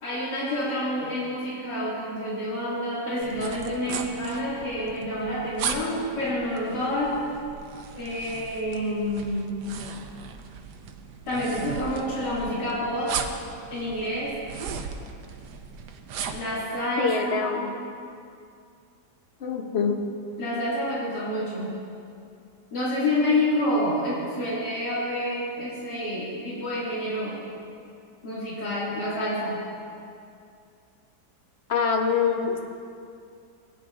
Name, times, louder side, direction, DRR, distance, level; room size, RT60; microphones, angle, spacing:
voice 1, 0.0-7.2 7.9-9.6 11.3-13.2 13.7-14.4 16.3-17.6 20.4-21.7 22.7-27.4 28.2-29.6, left 1 dB, 75° left, -9 dB, 2.9 m, -28 dB
sound 1, 3.2-16.5, right 6 dB, 75° right, 1.2 m, -37 dB
voice 2, 17.0-17.7 19.4-20.0 31.7-32.6, left 5 dB, 45° left, 3 dB, 0.9 m, -25 dB
18.0 x 9.6 x 2.5 m, 2.4 s
omnidirectional pair, 1.8 m